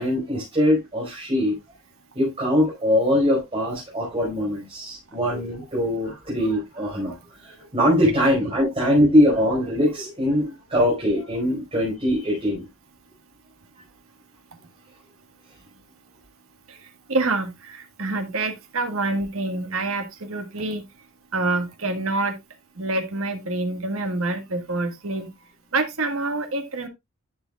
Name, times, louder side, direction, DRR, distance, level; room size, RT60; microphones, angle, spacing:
voice 1, 0.0-1.5 2.1-7.1 7.4-12.6, equal, 25° right, 4.9 m, -22 dB
voice 2, 16.7-20.8 21.3-22.4 22.8-25.3 25.7-26.9, right 2 dB, 70° right, 1.8 m, -27 dB
11.5 x 8.0 x 2.4 m
head